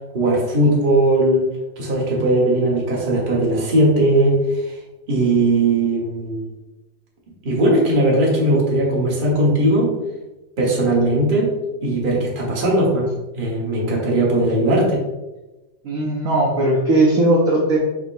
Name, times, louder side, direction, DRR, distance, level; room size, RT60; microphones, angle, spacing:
voice 1, 0.1-1.5 1.8-4.7 5.1-6.4 7.4-9.9 10.6-11.5 11.8-13.1 13.4-15.0, right 1 dB, 35° right, -3 dB, 0.9 m, -18 dB
voice 2, 15.8-17.8, right 1 dB, 65° right, -3 dB, 0.9 m, -17 dB
4.6 x 4.1 x 2.5 m, 1.1 s
omnidirectional pair, 2.1 m